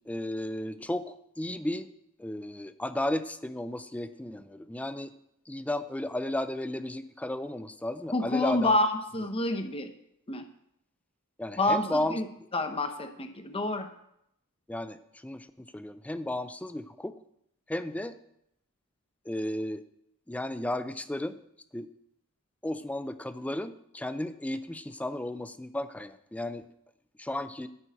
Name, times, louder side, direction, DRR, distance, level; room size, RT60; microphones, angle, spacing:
voice 1, 0.1-1.9 2.2-5.1 5.5-8.8 11.4-12.2 14.7-17.2 17.7-18.2 19.3-19.8 20.3-21.4 21.7-21.9 22.6-26.6 27.2-27.7, left 1 dB, 5° left, 12 dB, 0.4 m, -34 dB
voice 2, 8.1-9.9 10.3-10.4 11.6-12.2 12.5-13.9, left 1 dB, 25° left, 7 dB, 0.8 m, -28 dB
9.8 x 6.2 x 8.2 m, 0.77 s
head